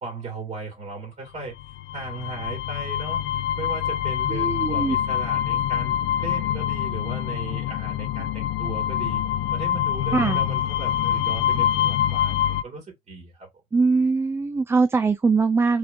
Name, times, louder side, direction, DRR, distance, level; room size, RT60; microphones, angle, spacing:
voice 1, 0.0-1.5 1.9-9.2 9.5-13.5, right 3 dB, 40° right, 2.2 m, -37 dB
sound 1, 1.6-12.6, left 10 dB, 85° left, 0.4 m, -25 dB
voice 2, 4.3-5.0 10.1-10.4 13.7-15.8, right 4 dB, 15° right, 0.3 m, -21 dB
4.6 x 3.7 x 2.6 m
cardioid pair, 110°, 17 cm